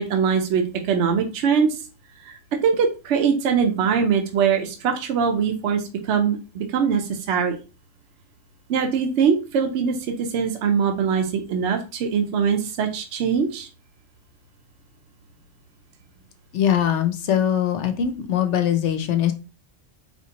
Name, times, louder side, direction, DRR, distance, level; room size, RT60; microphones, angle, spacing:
voice 1, 0.0-1.8 2.2-7.6 8.7-13.7, right 6 dB, 65° right, 3 dB, 0.9 m, -22 dB
voice 2, 16.5-19.3, left 9 dB, 65° left, 8 dB, 0.9 m, -21 dB
4.3 x 3.0 x 2.8 m, 0.32 s
omnidirectional pair, 1.3 m